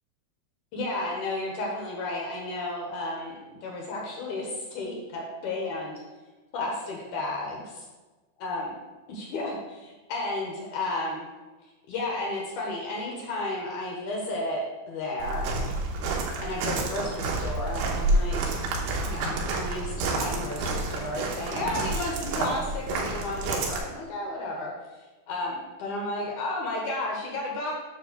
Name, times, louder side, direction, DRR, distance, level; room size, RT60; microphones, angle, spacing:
voice 1, 0.7-6.0 6.5-7.8 8.4-8.7 9.1-11.3 11.9-15.5 16.4-18.5 19.0-24.7 25.3-27.7, left 2 dB, 90° left, -1 dB, 1.7 m, -33 dB
Walk footsteps, 15.2-23.8, right 2 dB, 80° right, 3.5 m, -29 dB
9.8 x 3.4 x 6.7 m, 1.2 s
omnidirectional pair, 5.5 m